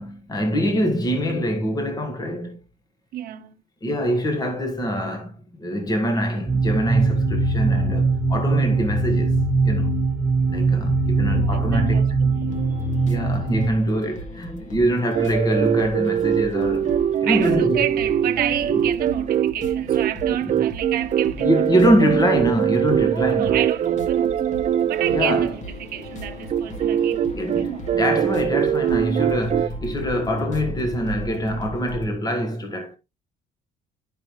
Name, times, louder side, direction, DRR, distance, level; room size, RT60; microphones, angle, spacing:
voice 1, 0.0-2.6 3.8-9.4 9.6-10.0 10.5-12.1 13.0-17.8 18.7-18.8 20.4-20.5 21.4-23.6 24.8-25.5 27.3-33.0, equal, 20° left, 1.4 m, -24 dB
voice 2, 3.1-3.5 11.3-12.5 17.2-21.9 23.0-24.6 24.9-27.9, right 12 dB, 65° right, 1.1 m, -30 dB
sound 1, 6.5-13.7, right 3 dB, 15° right, 1.5 m, -21 dB
sound 2, 12.5-32.1, left 1 dB, 45° left, 2.0 m, -37 dB
sound 3, 15.1-25.5 26.5-29.7, right 9 dB, 45° right, 0.5 m, -22 dB
12.0 x 5.3 x 3.1 m
cardioid pair, 110°, 17 cm